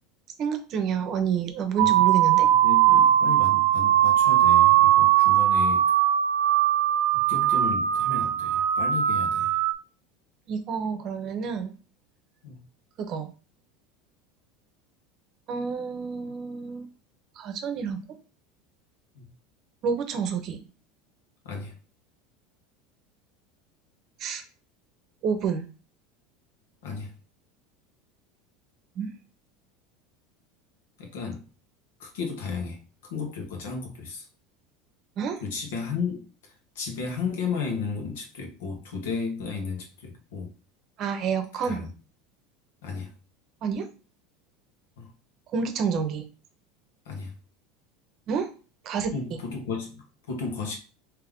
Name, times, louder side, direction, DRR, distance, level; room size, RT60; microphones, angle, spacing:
voice 1, 0.4-2.5 10.5-11.7 13.0-13.3 15.5-16.9 17.4-18.0 19.8-20.6 24.2-24.4 25.2-25.7 29.0-29.1 35.2-35.4 41.0-41.8 43.6-43.9 45.5-46.3 48.3-48.5 48.8-49.1, right 6 dB, 45° right, 7 dB, 0.8 m, -28 dB
sound 1, 1.8-9.7, right 12 dB, 75° right, 0.4 m, -20 dB
voice 2, 2.5-5.9 7.1-9.6 12.4-12.6 19.1-19.3 21.4-21.7 26.8-27.1 31.0-31.4 32.0-34.3 35.4-40.5 41.6-41.9 42.8-43.1 45.0-45.1 47.0-47.3 49.1-50.8, left 5 dB, 90° left, 2 dB, 1.3 m, -34 dB
3.6 x 3.1 x 3.6 m, 0.35 s
supercardioid pair, 130°, 0 cm